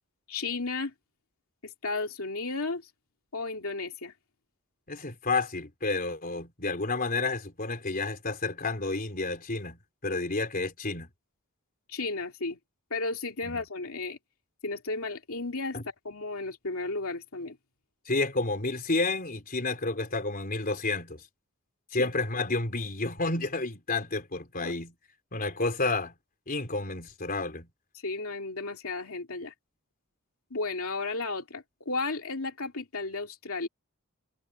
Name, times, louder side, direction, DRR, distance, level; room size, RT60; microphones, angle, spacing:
voice 1, 0.3-0.9 1.6-2.9 3.3-4.1 11.9-12.6 12.9-14.2 14.6-17.6 22.0-22.1 24.6-24.7 28.0-29.5 30.5-33.7, left 3 dB, 70° left, 3.0 m, -34 dB
voice 2, 4.9-11.1 13.4-13.6 15.7-15.8 18.1-21.2 21.9-24.9 25.3-26.1 26.5-27.7, left 3 dB, 40° left, 3.9 m, -30 dB
head